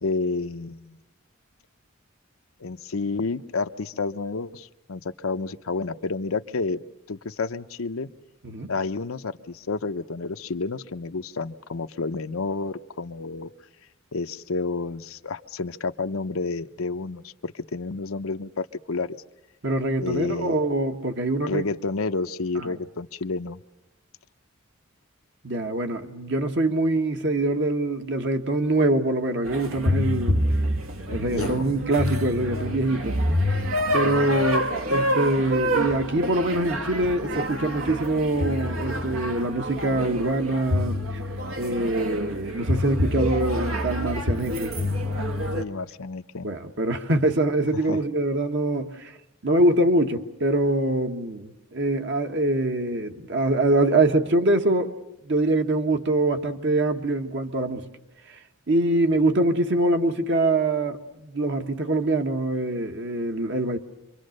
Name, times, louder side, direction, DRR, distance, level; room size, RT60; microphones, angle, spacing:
voice 1, 0.0-1.0 2.6-6.8 7.1-8.1 8.7-13.5 14.1-19.2 20.0-20.6 21.5-23.6 31.1-31.7 45.5-46.5 47.9-48.0, left 3 dB, 90° left, 0.8 m, -30 dB
voice 2, 19.6-21.6 22.5-22.8 25.4-30.4 31.1-33.2 33.9-41.2 41.6-44.7 46.4-49.2 49.4-54.9 55.2-57.8 58.3-58.4 58.7-63.8, right 2 dB, 55° right, 1.4 m, -24 dB
sound 1, 29.4-45.6, equal, 80° right, 1.5 m, -27 dB
27.0 x 24.0 x 6.5 m
head